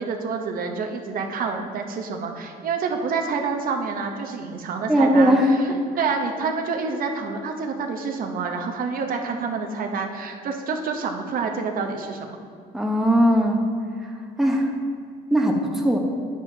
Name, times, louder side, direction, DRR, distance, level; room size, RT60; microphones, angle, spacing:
voice 1, 0.0-5.6 6.0-12.4, right 5 dB, 55° right, 3 dB, 0.8 m, -28 dB
voice 2, 4.9-5.5 12.7-13.6 14.0-14.1 14.4-14.7 15.3-16.0, equal, ahead, 0 dB, 1.0 m, -19 dB
10.0 x 8.2 x 2.7 m, 2.3 s
cardioid pair, 110°, 17 cm